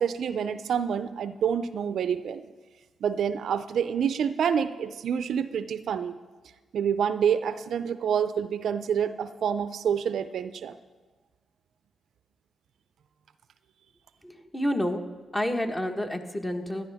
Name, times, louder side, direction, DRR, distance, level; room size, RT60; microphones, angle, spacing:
voice 1, 0.0-2.5 3.0-6.2 6.7-10.7, right 7 dB, 75° right, 12 dB, 0.4 m, -27 dB
voice 2, 14.2-15.0 15.3-16.9, equal, 15° left, 5 dB, 1.3 m, -29 dB
16.0 x 11.0 x 3.5 m, 1.3 s
cardioid pair, 60°, 0 cm